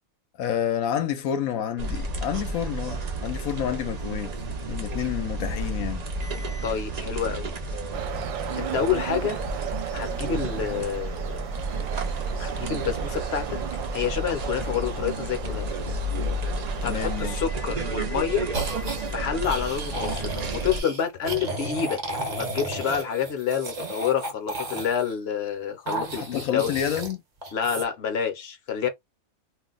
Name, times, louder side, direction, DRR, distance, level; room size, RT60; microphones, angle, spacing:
voice 1, 0.4-4.3 4.7-6.0 16.8-17.3 26.2-27.2, left 9 dB, 80° left, 1.0 m, -29 dB
sound 1, 1.8-20.8, right 2 dB, 60° right, 0.4 m, -31 dB
voice 2, 6.6-7.5 8.6-9.4 9.9-11.5 12.4-13.6 13.9-15.7 16.8-18.5 19.1-22.0 22.4-26.7 27.5-28.9, left 8 dB, 55° left, 0.8 m, -28 dB
sound 2, 7.9-17.7, right 9 dB, 75° right, 1.0 m, -37 dB
sound 3, 18.5-19.0 19.4-25.1 25.9-27.1 27.4-27.8, right 2 dB, 40° right, 0.8 m, -33 dB
2.5 x 2.1 x 3.8 m
omnidirectional pair, 1.5 m